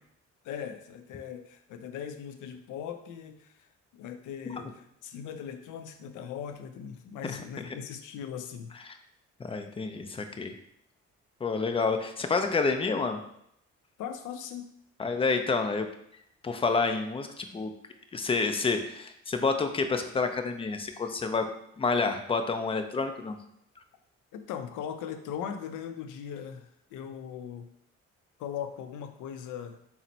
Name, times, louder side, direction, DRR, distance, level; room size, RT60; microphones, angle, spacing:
voice 1, 0.4-3.7 3.9-8.7 14.0-14.7 24.3-27.7 28.4-29.8, left 8 dB, 80° left, 8 dB, 0.5 m, -39 dB
voice 2, 9.4-10.5 11.4-13.2 15.0-15.9 16.4-17.7 18.1-21.5 21.8-23.4, left 4 dB, 20° left, 7 dB, 0.4 m, -29 dB
4.1 x 2.1 x 4.1 m, 0.73 s
cardioid pair, 90°, 30 cm